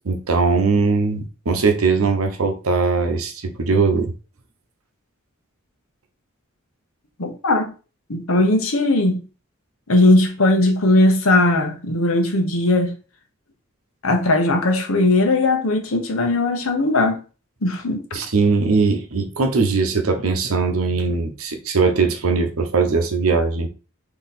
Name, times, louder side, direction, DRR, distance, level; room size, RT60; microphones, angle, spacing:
voice 1, 0.0-4.1 18.1-23.7, right 4 dB, 85° right, 0.8 m, -20 dB
voice 2, 7.2-7.7 8.1-9.2 9.9-13.0 14.0-17.2 17.6-18.0, left 2 dB, 80° left, 1.0 m, -18 dB
3.9 x 3.0 x 4.2 m
head